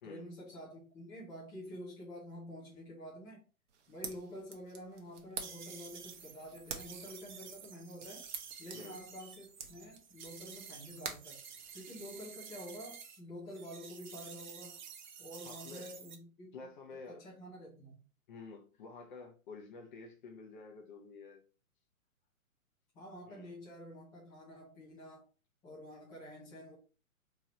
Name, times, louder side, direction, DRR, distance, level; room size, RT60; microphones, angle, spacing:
voice 1, 0.0-3.4 3.9-8.3 8.6-11.4 11.7-14.8 15.2-16.6 16.9-18.0 22.9-25.2 25.6-26.8, equal, 5° left, 0.5 m, -48 dB
sound 1, 3.7-12.3, right 6 dB, 55° right, 0.9 m, -49 dB
sound 2, 5.4-13.2 13.5-16.2, right 6 dB, 35° right, 0.5 m, -51 dB
voice 2, 8.7-9.0 15.4-15.9 16.5-17.3 18.3-21.4 23.3-23.6, left 4 dB, 35° left, 0.8 m, -50 dB
3.7 x 3.1 x 2.9 m
hypercardioid pair, 135°, 43 cm